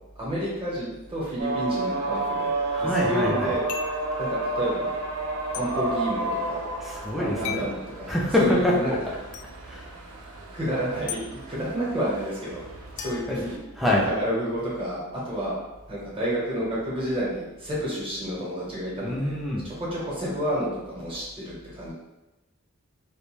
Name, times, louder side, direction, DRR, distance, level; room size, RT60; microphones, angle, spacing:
voice 1, 0.2-2.5 2.8-3.7 4.2-4.9 5.5-6.6 7.2-9.1 10.5-12.6 12.9-15.0 15.2-15.6 15.9-19.3 19.6-21.9, equal, 25° right, -7 dB, 0.9 m, -30 dB
sound 1, 1.4-13.6, right 2 dB, 75° right, 0.5 m, -31 dB
voice 2, 2.7-3.6 6.8-7.7 8.1-8.8 9.7-9.9 13.3-13.4 13.7-14.1 19.0-19.6, left 1 dB, ahead, -3 dB, 0.4 m, -25 dB
sound 2, 3.7-4.1 5.5-5.7 7.4-7.7 9.3-9.5 11.1-11.2 13.0-14.1, left 8 dB, 85° left, 0.4 m, -36 dB
2.4 x 2.1 x 3.1 m, 1.0 s
head